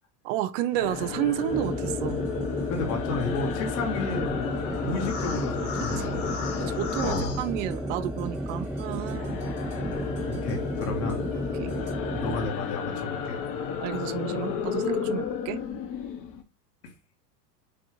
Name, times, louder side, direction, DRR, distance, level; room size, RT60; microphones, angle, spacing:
voice 1, 0.2-2.2 5.8-6.2 6.6-9.4 11.6-11.7 13.8-15.6, right 12 dB, 50° right, 0.5 m, -31 dB
sound 1, 0.7-11.9, right 4 dB, 90° right, 1.9 m, -51 dB
sound 2, 0.8-8.1 8.4-16.4, left 6 dB, 40° left, 0.8 m, -33 dB
sound 3, 1.5-12.5, equal, 5° right, 0.8 m, -33 dB
voice 2, 2.7-4.5 4.8-6.4 7.0-7.4 10.3-11.2 12.1-13.5 16.8-16.9, left 3 dB, 65° left, 1.4 m, -32 dB
5.3 x 2.4 x 3.0 m
hypercardioid pair, 110°, 49 cm